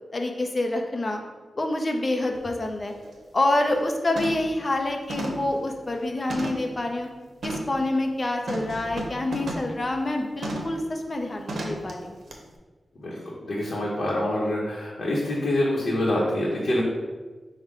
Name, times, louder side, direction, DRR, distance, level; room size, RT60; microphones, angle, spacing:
voice 1, 0.1-1.2 1.5-2.9 3.3-7.1 7.4-12.2, left 2 dB, 30° left, 3 dB, 0.5 m, -27 dB
sound 1, 2.3-2.4 2.9-3.1 3.5-3.8 4.2-4.6 5.1-6.8 7.4-7.8 8.5-9.7 10.4-10.8 11.5-11.9 12.3-12.4, right 1 dB, 85° right, 0.6 m, -33 dB
voice 2, 13.0-16.8, left 1 dB, 55° left, -5 dB, 0.8 m, -26 dB
5.1 x 2.1 x 4.8 m, 1.3 s
wide cardioid pair, 150°, 0 cm